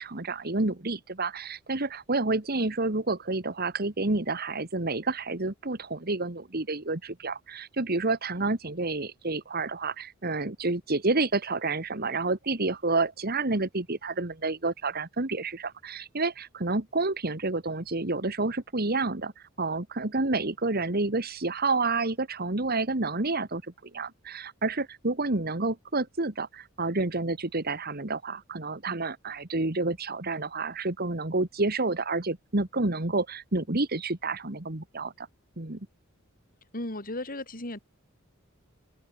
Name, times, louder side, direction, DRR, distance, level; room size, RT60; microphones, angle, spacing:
voice 1, 0.0-19.3 19.6-35.3 35.6-35.9, right 3 dB, 50° right, 2.0 m, -29 dB
voice 2, 36.7-37.8, left 1 dB, 45° left, 4.9 m, -35 dB
open air
head